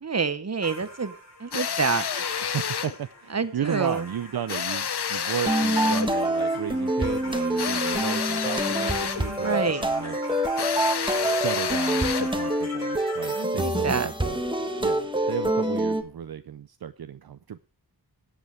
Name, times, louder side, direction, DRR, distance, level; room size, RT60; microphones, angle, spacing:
voice 1, 0.0-1.1 1.4-2.1 3.3-4.1 9.2-9.8 13.4-14.1, right 5 dB, 40° right, 13 dB, 1.0 m, -27 dB
sound 1, 0.6-13.4, equal, 40° left, 4.2 m, -41 dB
sound 2, 1.5-3.0 4.5-6.2 7.6-9.3 10.6-12.4, left 7 dB, 80° left, 0.8 m, -29 dB
voice 2, 2.4-10.2 11.3-14.4 14.8-17.6, right 9 dB, 70° right, 11 dB, 0.6 m, -34 dB
sound 3, 5.4-16.0, right 1 dB, 10° right, 1.3 m, -26 dB
21.5 x 8.2 x 3.3 m, 0.32 s
wide cardioid pair, 85°, 39 cm